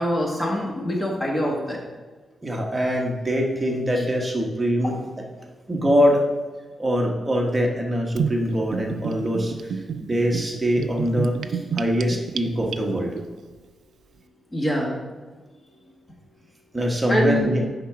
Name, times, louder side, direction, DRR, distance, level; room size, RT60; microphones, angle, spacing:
voice 1, 0.0-1.8 4.0-4.1 14.5-15.0 17.1-17.6, equal, 15° left, -1 dB, 1.5 m, -24 dB
voice 2, 2.4-5.0 5.7-6.3 6.8-11.4 11.7-13.1 16.7-17.6, equal, 15° right, -1 dB, 1.2 m, -23 dB
Gurgling / Bathtub (filling or washing), 8.2-13.2, right 7 dB, 85° right, 0.4 m, -30 dB
9.5 x 3.7 x 5.9 m, 1.3 s
wide cardioid pair, 175°, 0 cm